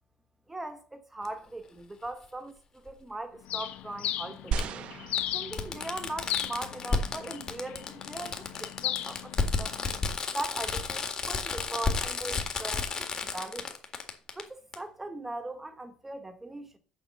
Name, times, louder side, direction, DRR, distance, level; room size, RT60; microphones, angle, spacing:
voice 1, 0.5-4.9 5.3-9.8 10.3-13.8 14.4-16.8, right 2 dB, 10° right, 1.0 m, -40 dB
Fireworks, 1.3-1.4 2.9-3.0 4.6-4.7 5.2-5.3 5.5-14.4 14.7-14.8, left 4 dB, 35° left, 1.7 m, -32 dB
Bird, 3.5-10.2, left 12 dB, 70° left, 0.9 m, -37 dB
sound 1, 4.5-6.0 6.8-6.9, right 6 dB, 55° right, 0.8 m, -35 dB
7.3 x 6.4 x 7.3 m
cardioid pair, 140°, 2 cm